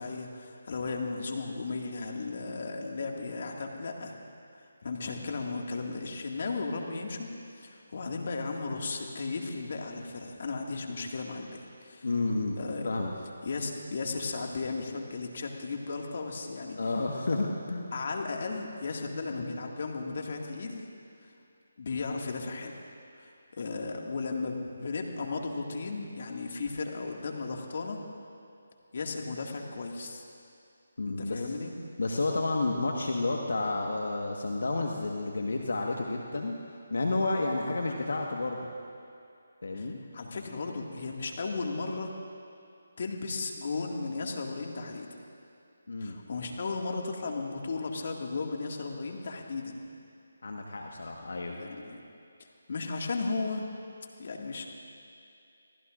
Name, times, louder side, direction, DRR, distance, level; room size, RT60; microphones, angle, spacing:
voice 1, 0.0-4.1 4.8-7.3 7.6-12.1 12.6-12.9 13.4-16.8 17.9-20.9 21.2-21.3 21.8-22.7 23.2-28.0 28.9-30.2 31.1-31.7 39.7-42.1 43.0-45.1 46.0-49.8 51.5-52.0 52.7-53.7 54.2-54.7, left 3 dB, 50° left, 1 dB, 2.0 m, -35 dB
voice 2, 12.0-12.6 12.8-13.1 16.8-17.9 31.0-31.4 32.0-36.6 36.9-38.6 39.6-40.0 45.9-46.2 50.4-51.6, left 2 dB, 70° left, 1 dB, 1.5 m, -30 dB
28.0 x 19.0 x 2.6 m, 2.5 s
figure-of-eight pair, 160°, 0 cm